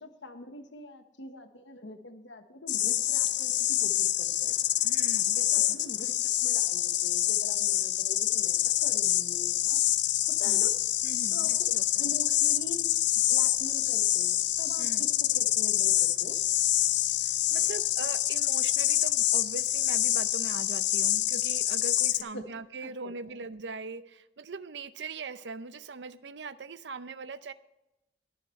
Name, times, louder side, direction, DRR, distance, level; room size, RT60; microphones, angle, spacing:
voice 1, 0.0-4.6 5.4-9.8 10.2-10.8 11.3-11.7 12.0-12.9 13.3-16.4 17.5-17.7 22.3-22.5 22.8-23.3, left 1 dB, 85° left, 7 dB, 1.3 m, -44 dB
sound 1, 2.7-22.2, left 13 dB, 70° left, 0.5 m, -26 dB
voice 2, 4.8-5.8 10.4-10.7 11.0-12.0 14.8-15.1 17.2-27.5, right 4 dB, 75° right, 14 dB, 0.6 m, -41 dB
21.0 x 7.3 x 3.2 m, 0.94 s
head